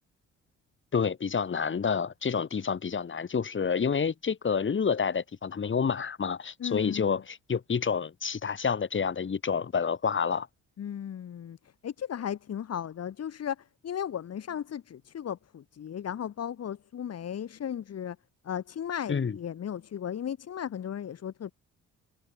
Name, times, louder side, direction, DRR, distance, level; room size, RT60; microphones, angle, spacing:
voice 1, 0.9-10.5 19.1-19.4, left 6 dB, 40° left, 5.5 m, -28 dB
voice 2, 6.6-7.2 10.8-18.2 18.4-21.5, left 9 dB, 55° left, 2.4 m, -36 dB
cardioid pair, 90°, 30 cm